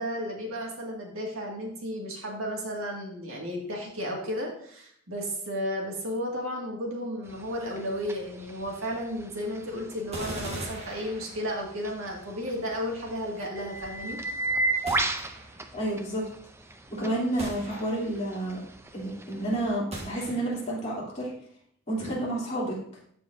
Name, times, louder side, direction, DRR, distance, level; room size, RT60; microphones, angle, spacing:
voice 1, 0.0-14.2, equal, 65° right, -1 dB, 2.1 m, -33 dB
sound 1, 7.3-19.8, right 2 dB, 10° right, 0.4 m, -36 dB
sound 2, 10.1-11.8 14.9-15.7 17.4-18.3 19.9-20.8, right 1 dB, 30° right, 1.5 m, -40 dB
voice 2, 15.7-16.2 16.9-18.6 18.9-21.3 21.9-22.7, right 1 dB, 30° left, -6 dB, 3.0 m, -30 dB
14.5 x 4.9 x 2.7 m, 0.64 s
head